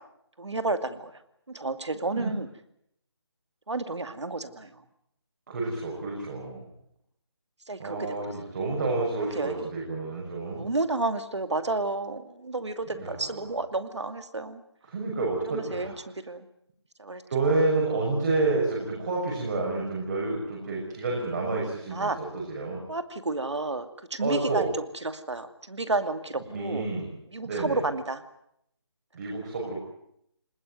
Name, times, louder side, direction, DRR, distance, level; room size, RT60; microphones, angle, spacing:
voice 1, 0.4-1.1 1.5-2.5 3.7-4.7 7.7-8.1 9.3-9.7 10.6-14.6 15.5-16.5 17.0-17.2 21.9-22.2 22.9-24.7 25.0-26.9 27.3-28.2, right 2 dB, 85° right, 10 dB, 2.5 m, -31 dB
voice 2, 5.5-6.7 7.8-10.7 12.9-13.4 14.8-15.9 17.3-22.8 24.2-24.7 26.5-27.1 27.4-27.8 29.1-29.8, right 3 dB, 40° right, -2 dB, 6.6 m, -29 dB
22.0 x 20.5 x 9.3 m, 0.74 s
figure-of-eight pair, 165°, 14 cm